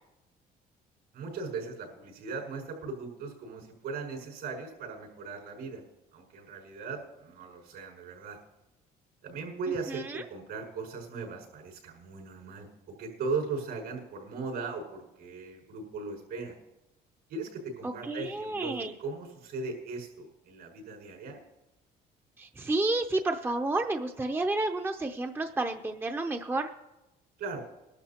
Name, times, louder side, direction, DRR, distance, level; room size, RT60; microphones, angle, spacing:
voice 1, 1.1-5.8 6.1-8.4 9.2-16.5 17.3-21.4 27.4-27.6, right 4 dB, 75° right, -1 dB, 5.9 m, -38 dB
voice 2, 9.9-10.2 17.8-18.9 22.4-26.7, right 2 dB, 15° right, 5 dB, 0.6 m, -31 dB
21.0 x 12.0 x 2.9 m, 0.98 s
cardioid pair, 110°, 17 cm